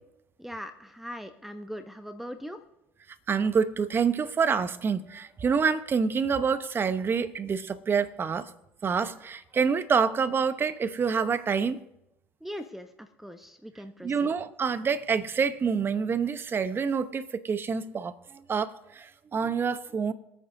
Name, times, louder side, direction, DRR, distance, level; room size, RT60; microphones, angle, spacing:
voice 1, 0.4-2.6 12.4-14.3, equal, 5° right, 1.0 m, -40 dB
voice 2, 3.3-8.5 8.8-11.8 14.0-20.1, right 6 dB, 35° right, 1.0 m, -27 dB
26.5 x 9.1 x 2.7 m
hypercardioid pair, 70°, 7 cm